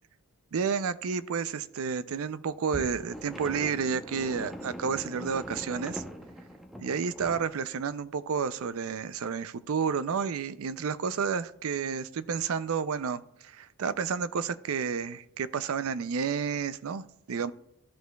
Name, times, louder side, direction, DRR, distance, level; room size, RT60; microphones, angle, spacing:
voice 1, 0.5-6.0 6.8-17.5, right 6 dB, 75° right, 15 dB, 0.4 m, -31 dB
sound 1, 2.7-7.4, equal, ahead, 0.6 m, -41 dB
14.0 x 6.4 x 2.3 m, 0.79 s
head